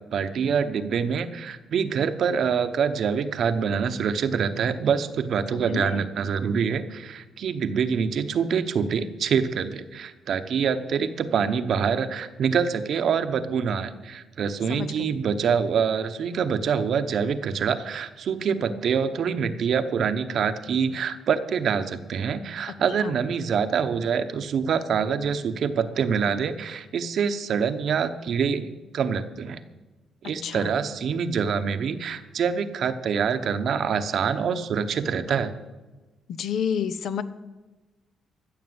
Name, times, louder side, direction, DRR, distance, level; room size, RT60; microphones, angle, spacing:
voice 1, 0.1-28.7 28.9-29.6 30.2-35.5, right 6 dB, 65° right, 10 dB, 1.0 m, -25 dB
voice 2, 5.7-6.0 14.7-15.2 22.7-23.2 30.2-30.7 36.3-37.2, left 8 dB, 70° left, 13 dB, 0.8 m, -30 dB
14.5 x 6.9 x 7.9 m, 1.2 s
cardioid pair, 90°, 0 cm